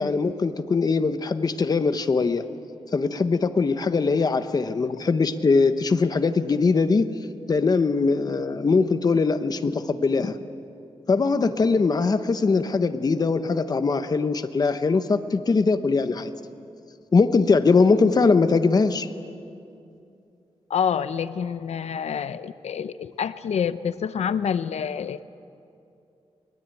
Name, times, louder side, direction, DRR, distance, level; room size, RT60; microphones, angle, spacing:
voice 1, 0.0-2.4 2.9-7.1 7.5-10.3 11.1-16.3 17.1-19.1, left 4 dB, 35° left, 9 dB, 0.9 m, -21 dB
voice 2, 20.7-25.2, left 7 dB, 85° left, 13 dB, 0.6 m, -27 dB
23.0 x 20.0 x 9.1 m, 2.6 s
wide cardioid pair, 170°, 11 cm